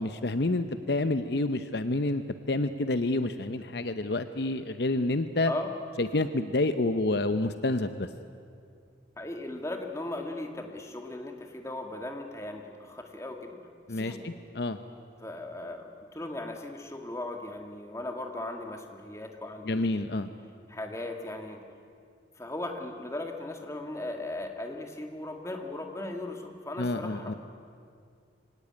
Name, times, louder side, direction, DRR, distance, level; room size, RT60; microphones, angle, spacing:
voice 1, 0.0-2.2 2.5-5.5 6.0-8.1 13.9-14.8 19.7-20.3 26.8-27.3, left 2 dB, 60° left, 10 dB, 0.8 m, -28 dB
voice 2, 9.2-13.6 13.9-14.3 15.2-20.1 20.7-21.6 22.4-27.4, left 1 dB, 15° left, 3 dB, 1.9 m, -37 dB
24.0 x 17.5 x 9.6 m, 2.3 s
head